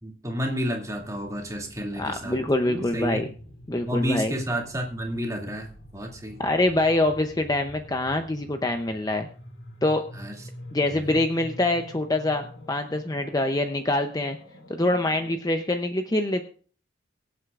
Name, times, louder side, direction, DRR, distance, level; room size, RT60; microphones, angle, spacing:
voice 1, 0.0-2.4 2.7-3.2 3.9-6.4 10.1-10.3 10.8-11.0, equal, 15° right, 1 dB, 2.5 m, -31 dB
sound 1, 0.8-15.4, left 1 dB, 85° left, 4.5 m, -46 dB
voice 2, 2.0-3.3 3.7-4.3 6.4-9.3 9.8-10.0 10.7-14.4 14.7-16.4, left 2 dB, 20° left, 6 dB, 0.7 m, -25 dB
23.5 x 8.0 x 2.5 m, 0.41 s
head